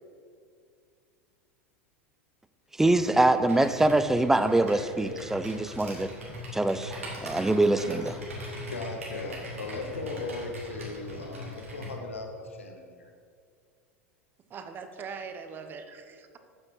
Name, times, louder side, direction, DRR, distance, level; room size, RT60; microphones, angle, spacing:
voice 1, 2.8-6.1 6.5-8.2, right 2 dB, 5° right, 11 dB, 0.4 m, -24 dB
Computer keyboard, 2.9-12.0, equal, 75° right, 2.3 m, -41 dB
voice 2, 8.5-13.1, left 3 dB, 75° left, 3 dB, 1.1 m, -38 dB
voice 3, 14.5-16.4, right 5 dB, 30° right, 8 dB, 0.8 m, -41 dB
9.3 x 7.7 x 4.5 m, 2.2 s
figure-of-eight pair, 80°, 7 cm